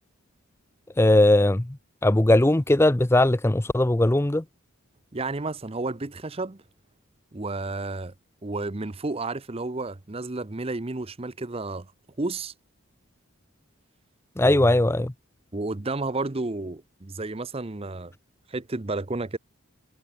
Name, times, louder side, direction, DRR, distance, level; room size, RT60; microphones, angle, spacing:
voice 1, 1.0-1.8 2.0-4.4 14.4-15.1, left 1 dB, 10° left, 0.5 m, -19 dB
voice 2, 5.1-6.6 7.3-8.1 8.4-11.9 12.2-12.5 14.4-14.7 15.5-18.1 18.5-19.4, right 2 dB, 25° right, 0.7 m, -31 dB
head